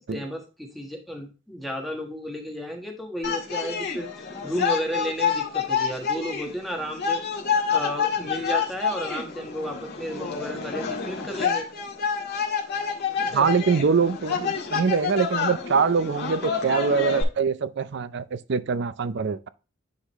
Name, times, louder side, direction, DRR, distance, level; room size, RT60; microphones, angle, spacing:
voice 1, 0.1-4.1 4.4-7.2 7.7-11.6 13.2-13.5, equal, ahead, 1.3 m, -33 dB
sound 1, 3.2-17.2, left 6 dB, 55° left, 1.8 m, -28 dB
voice 2, 13.3-19.5, right 5 dB, 60° right, 0.5 m, -24 dB
9.9 x 3.9 x 3.1 m
head